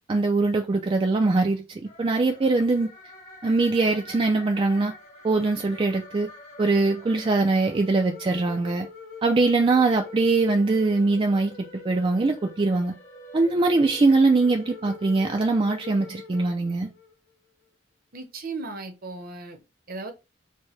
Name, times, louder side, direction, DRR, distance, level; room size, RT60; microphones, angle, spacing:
voice 1, 0.1-2.9 3.4-4.9 5.2-6.3 6.6-8.9 9.2-13.0 13.3-16.9, right 3 dB, 30° right, 0.4 m, -22 dB
sound 1, 1.8-17.1, left 4 dB, 45° left, 1.2 m, -45 dB
voice 2, 18.1-19.6 19.9-20.1, right 3 dB, 55° right, 0.8 m, -36 dB
4.5 x 2.1 x 3.1 m
head